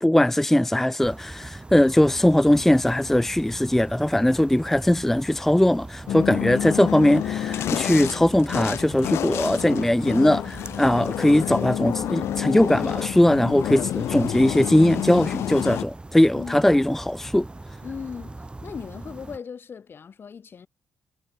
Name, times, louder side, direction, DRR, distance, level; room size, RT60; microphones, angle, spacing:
voice 1, 0.0-17.5, left 1 dB, 5° left, 0.4 m, -20 dB
sound 1, 1.0-19.4, right 2 dB, 20° right, 2.9 m, -41 dB
sound 2, 6.1-15.8, left 12 dB, 70° left, 0.6 m, -29 dB
voice 2, 16.3-16.8 17.8-20.7, left 6 dB, 55° left, 5.1 m, -38 dB
hypercardioid pair, 45°, 5 cm